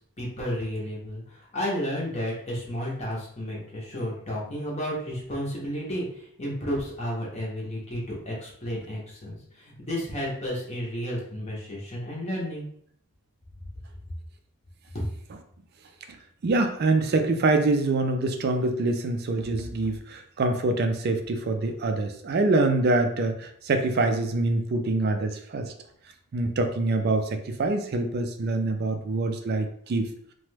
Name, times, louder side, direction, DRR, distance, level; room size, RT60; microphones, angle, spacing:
voice 1, 0.0-12.7 14.9-15.0, equal, 30° left, -4 dB, 0.7 m, -32 dB
voice 2, 16.4-25.7 26.3-30.1, right 2 dB, 45° right, 7 dB, 0.3 m, -25 dB
2.9 x 2.2 x 3.1 m, 0.66 s
head